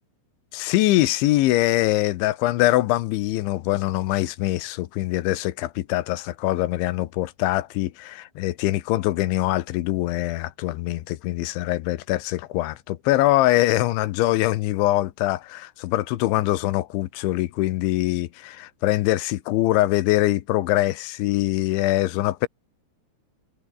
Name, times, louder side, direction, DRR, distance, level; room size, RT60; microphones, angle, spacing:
voice 1, 0.5-22.5, left 16 dB, 75° left, 3.3 m, -23 dB
omnidirectional pair, 5.8 m